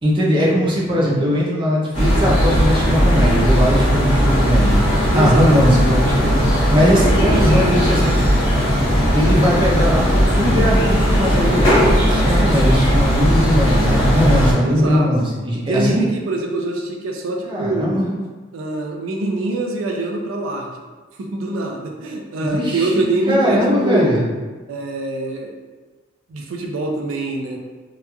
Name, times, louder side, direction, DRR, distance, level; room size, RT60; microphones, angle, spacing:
voice 1, 0.0-4.8 5.1-6.3 6.7-8.1 9.1-10.0 10.4-16.0 17.4-18.1 22.4-24.2, equal, 25° right, -4 dB, 0.4 m, -19 dB
sound 1, 1.9-14.5, equal, 80° left, 1.0 m, -17 dB
voice 2, 5.1-5.6 6.7-8.0 14.6-15.1 15.7-18.0 18.5-20.7 21.2-24.2 24.7-25.5 26.3-27.6, right 2 dB, 85° right, 1 dB, 0.4 m, -24 dB
2.9 x 2.3 x 2.2 m, 1.3 s
head